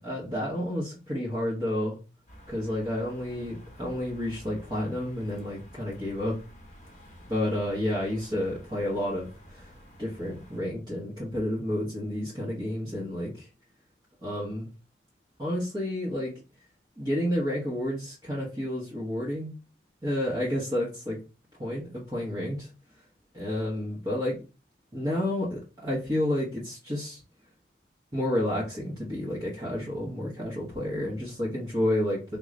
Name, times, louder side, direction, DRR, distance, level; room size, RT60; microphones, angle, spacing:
voice 1, 0.0-2.0 2.5-6.3 7.3-9.7 10.0-13.5 14.2-14.7 15.4-16.3 17.0-19.5 20.0-21.2 21.6-22.7 23.3-24.4 24.9-27.2 28.1-32.4, left 1 dB, 25° right, -6 dB, 1.0 m, -30 dB
sound 1, 2.3-10.6, equal, 40° left, 0.9 m, -50 dB
3.7 x 2.4 x 3.1 m, 0.32 s
head